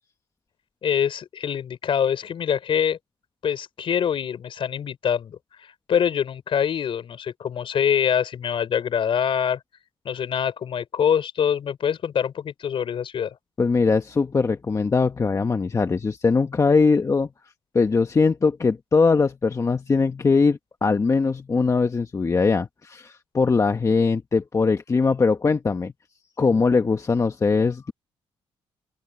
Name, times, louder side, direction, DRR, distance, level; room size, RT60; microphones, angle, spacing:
voice 1, 0.8-3.0 3.4-5.4 5.9-9.6 10.0-13.4, left 8 dB, 60° left, 4.8 m, -24 dB
voice 2, 13.6-17.3 17.7-25.9 26.4-27.9, left 4 dB, 30° left, 1.4 m, -21 dB
open air
cardioid pair, 90°, 10 cm